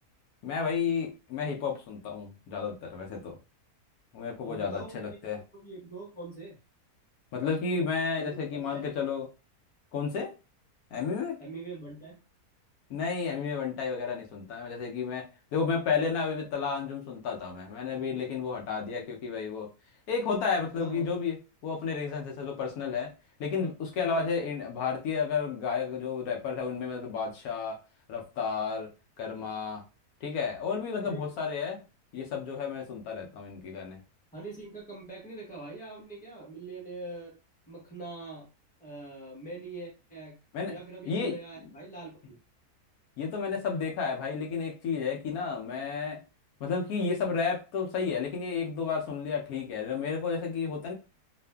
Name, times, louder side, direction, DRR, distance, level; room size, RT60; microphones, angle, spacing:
voice 1, 0.4-3.4 4.1-5.4 7.3-9.2 9.9-10.3 10.9-11.4 12.9-19.7 20.1-21.4 21.6-23.1 23.4-27.8 28.1-28.9 29.2-29.8 30.2-31.8 32.1-34.0 40.5-40.7 41.1-41.3 43.2-46.2 46.6-50.9, left 5 dB, 75° left, 1 dB, 1.1 m, -32 dB
voice 2, 4.4-5.2 5.5-6.6 8.1-8.8 11.4-12.2 20.7-21.1 24.0-24.3 31.0-31.3 34.3-37.4 37.7-38.5 38.8-40.3 40.7-42.4, right 3 dB, 5° left, -4 dB, 0.9 m, -43 dB
2.7 x 2.4 x 2.2 m, 0.31 s
omnidirectional pair, 1.6 m